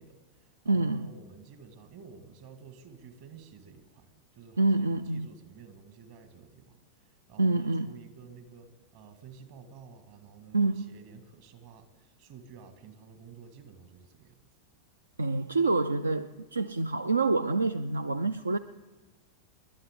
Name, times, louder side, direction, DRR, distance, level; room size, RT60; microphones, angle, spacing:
voice 1, 0.0-14.4, right 6 dB, 50° right, 1.9 m, -51 dB
voice 2, 0.7-1.1 4.6-5.3 7.4-7.9 10.5-10.9 15.2-18.6, right 3 dB, 80° right, 0.4 m, -27 dB
26.5 x 11.5 x 3.7 m
figure-of-eight pair, 90°, 0 cm